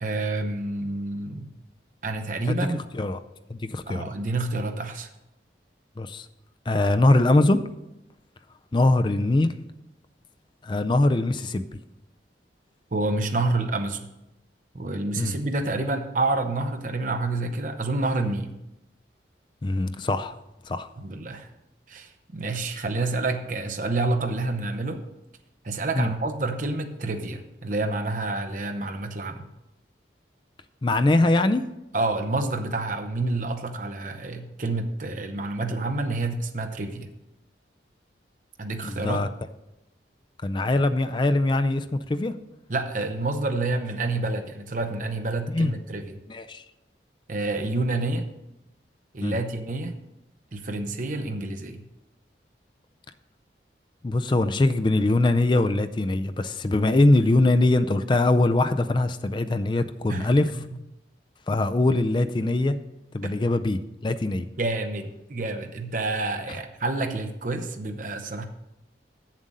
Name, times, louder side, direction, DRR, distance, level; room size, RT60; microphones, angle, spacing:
voice 1, 0.0-1.5 2.0-2.8 3.9-5.1 12.9-14.1 14.7-18.5 21.0-21.5 21.9-25.0 25.6-29.5 31.9-37.1 38.6-39.2 42.7-46.2 47.3-48.3 49.1-50.0 50.5-51.8 60.1-60.3 63.2-63.3 64.6-68.5, right 2 dB, 45° right, 6 dB, 0.8 m, -28 dB
voice 2, 2.5-3.2 3.5-4.1 6.0-6.3 6.7-7.6 8.7-9.5 10.6-11.8 15.2-15.4 19.6-20.4 20.7-20.9 25.9-26.1 30.8-31.6 38.8-39.3 40.4-42.3 45.5-45.7 46.3-46.6 49.2-49.4 54.0-60.5 61.5-62.8 63.1-64.5, left 2 dB, 25° left, 10 dB, 0.4 m, -22 dB
7.6 x 7.4 x 5.4 m, 0.90 s
head